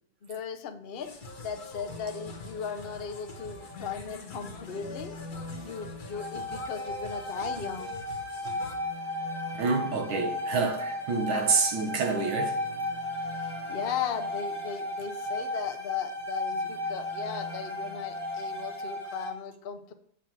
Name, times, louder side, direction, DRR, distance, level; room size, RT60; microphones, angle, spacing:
voice 1, 0.2-1.1 1.4-5.2 5.6-7.9 13.4-19.9, left 7 dB, 70° left, 0.5 m, -37 dB
sound 1, 1.0-8.8, left 2 dB, 55° left, 1.8 m, -45 dB
sound 2, 1.9-4.0 4.5-19.3, left 1 dB, 20° right, 0.8 m, -35 dB
voice 2, 9.6-12.8, right 4 dB, 75° right, 1.9 m, -28 dB
7.3 x 7.3 x 4.6 m
omnidirectional pair, 2.1 m